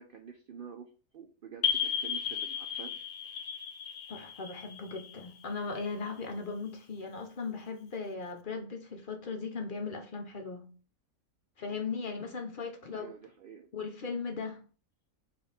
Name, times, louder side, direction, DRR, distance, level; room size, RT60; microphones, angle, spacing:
voice 1, 0.0-2.9 12.9-13.7, right 7 dB, 85° right, 5 dB, 0.4 m, -48 dB
sound 1, 1.6-6.1, left 8 dB, 85° left, 1.1 m, -35 dB
voice 2, 4.1-10.7 11.6-13.1 13.7-14.6, left 4 dB, 55° left, 4 dB, 0.6 m, -38 dB
5.1 x 2.5 x 4.0 m, 0.38 s
omnidirectional pair, 1.5 m